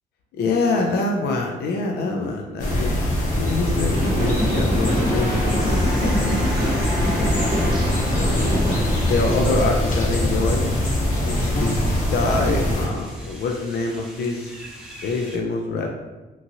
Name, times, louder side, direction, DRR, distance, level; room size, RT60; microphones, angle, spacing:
voice 1, 0.4-3.0 3.4-6.6 7.1-7.6 8.1-10.7 11.2-14.5 15.0-15.9, left 3 dB, 70° left, 1 dB, 0.4 m, -25 dB
sound 1, 2.6-12.9, left 1 dB, 45° left, 0.8 m, -22 dB
sound 2, 3.9-9.4, right 1 dB, 60° right, 0.9 m, -27 dB
sound 3, 5.6-15.4, right 1 dB, 5° right, 0.7 m, -41 dB
3.0 x 2.4 x 2.7 m, 1.2 s
cardioid pair, 70°, 18 cm